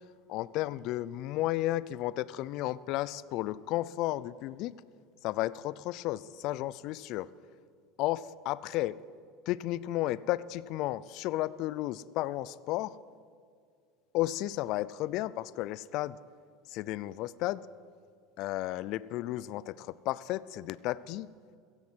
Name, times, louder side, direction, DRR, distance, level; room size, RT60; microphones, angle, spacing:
voice 1, 0.3-4.8 5.2-7.3 8.0-9.0 9.5-13.0 14.1-16.2 16.7-17.6 18.4-21.3, left 16 dB, 60° left, 19 dB, 0.4 m, -33 dB
15.5 x 15.5 x 4.5 m, 2.2 s
supercardioid pair, 110°, 0 cm